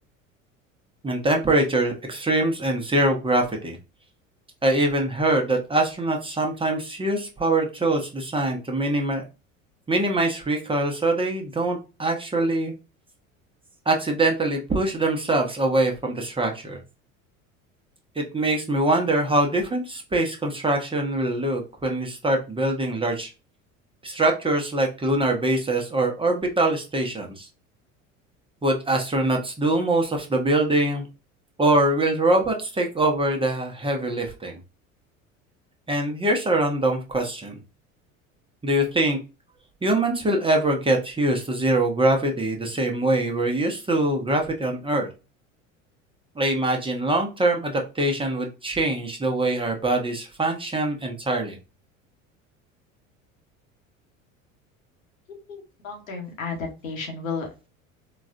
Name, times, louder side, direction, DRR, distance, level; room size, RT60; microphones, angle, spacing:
voice 1, 1.0-3.8 4.6-9.3 9.9-12.7 13.9-16.8 18.2-23.3 24.0-27.5 28.6-31.0 31.6-34.6 35.9-37.5 38.6-39.2 39.8-45.1 46.4-51.6, right 2 dB, 15° right, 2 dB, 0.8 m, -23 dB
voice 2, 55.5-57.7, left 4 dB, 85° left, 1 dB, 1.1 m, -33 dB
3.9 x 2.4 x 2.6 m, 0.30 s
hypercardioid pair, 70°, 40 cm